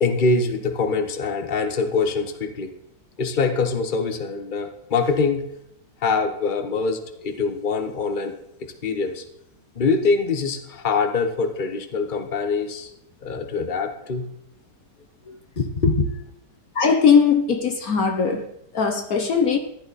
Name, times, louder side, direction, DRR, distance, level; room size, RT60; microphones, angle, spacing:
voice 1, 0.0-2.7 3.2-5.4 6.0-8.3 8.8-9.2 9.7-12.9 13.2-14.2 15.6-16.1, left 4 dB, 30° left, 1.3 m, -23 dB
voice 2, 16.7-18.5 18.7-19.6, left 6 dB, 60° left, 1.4 m, -19 dB
14.5 x 12.0 x 4.3 m
omnidirectional pair, 1.8 m